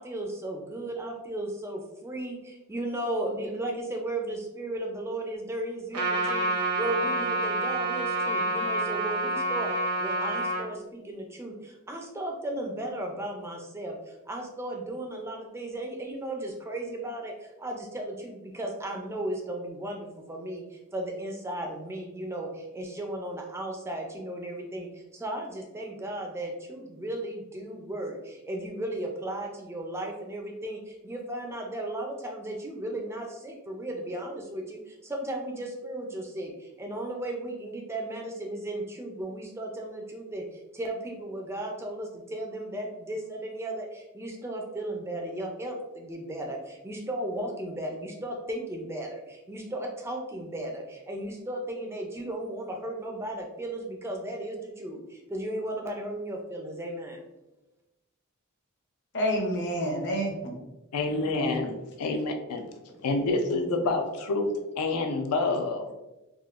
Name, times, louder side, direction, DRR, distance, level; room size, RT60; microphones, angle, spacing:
voice 1, 0.0-6.5 6.8-9.7 10.0-57.2, right 1 dB, 10° right, 1 dB, 0.3 m, -35 dB
Trumpet, 5.9-10.6, right 2 dB, 90° right, 0.9 m, -28 dB
voice 2, 59.1-60.6 61.1-61.5, equal, 55° left, 0 dB, 0.7 m, -29 dB
voice 3, 60.9-62.7 63.0-64.5 64.8-65.9, left 3 dB, 90° left, 4 dB, 0.4 m, -28 dB
3.6 x 2.3 x 2.4 m, 1.0 s
head